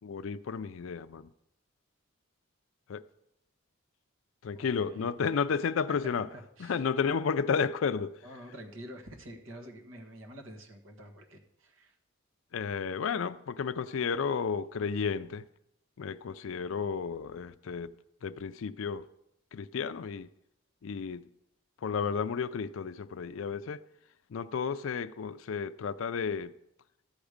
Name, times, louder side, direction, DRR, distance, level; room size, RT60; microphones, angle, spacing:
voice 1, 0.0-1.3 2.9-3.0 4.4-6.3 6.6-8.2 12.5-15.4 16.0-17.9 18.2-19.1 19.5-20.3 20.8-21.3 21.8-23.8 24.3-26.5, left 6 dB, 80° left, 0.4 m, -32 dB
voice 2, 4.5-5.1 6.6-6.8 8.2-11.9, equal, 80° right, 1.6 m, -48 dB
12.5 x 8.2 x 5.0 m
head